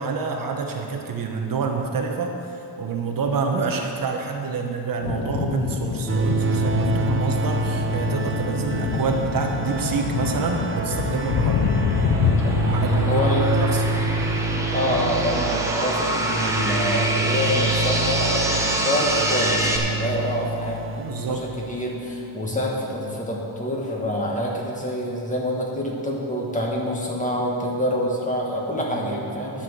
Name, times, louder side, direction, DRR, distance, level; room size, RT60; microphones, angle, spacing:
voice 1, 0.0-11.6 12.7-13.8 21.0-21.4 28.8-29.2 29.5-29.6, right 5 dB, 55° right, 3 dB, 1.0 m, -27 dB
sound 1, 5.0-15.5, left 7 dB, 60° left, 0.7 m, -27 dB
sound 2, 6.1-22.0, right 3 dB, 30° right, 0.5 m, -27 dB
sound 3, 9.2-19.8, right 1 dB, 5° right, 1.0 m, -28 dB
voice 2, 12.4-13.4 14.7-21.0 21.3-29.6, left 1 dB, 20° left, -2 dB, 1.6 m, -26 dB
11.0 x 5.9 x 7.6 m, 2.8 s
wide cardioid pair, 145°, 41 cm